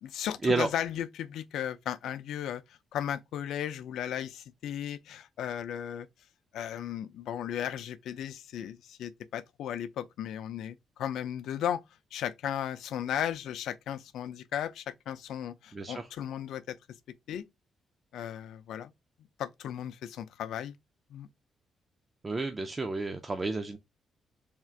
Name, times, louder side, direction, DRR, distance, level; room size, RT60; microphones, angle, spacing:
voice 1, 0.0-2.6 2.9-6.1 6.5-11.8 12.1-16.8 17.3-17.4 18.1-18.9 19.4-20.8 21.1-21.3, left 10 dB, 80° left, 0.4 m, -35 dB
voice 2, 15.7-16.0 22.2-23.8, right 3 dB, 20° right, 0.4 m, -30 dB
3.6 x 2.4 x 4.4 m
cardioid pair, 165°, 0 cm